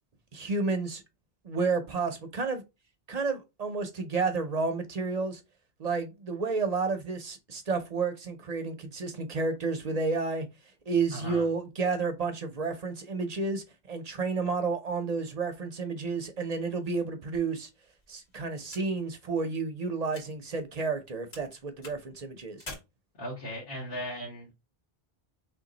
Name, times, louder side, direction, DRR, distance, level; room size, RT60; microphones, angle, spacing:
voice 1, 0.3-1.0 1.4-2.6 3.1-5.4 5.8-10.5 10.9-17.7 18.1-22.6, right 4 dB, 45° right, 0.6 m, -31 dB
voice 2, 11.1-11.4 23.2-24.5, equal, 60° left, 1.5 m, -37 dB
sound 1, 16.0-21.1 21.3-22.8, left 2 dB, 75° left, 1.9 m, -50 dB
3.2 x 3.0 x 3.7 m
omnidirectional pair, 1.1 m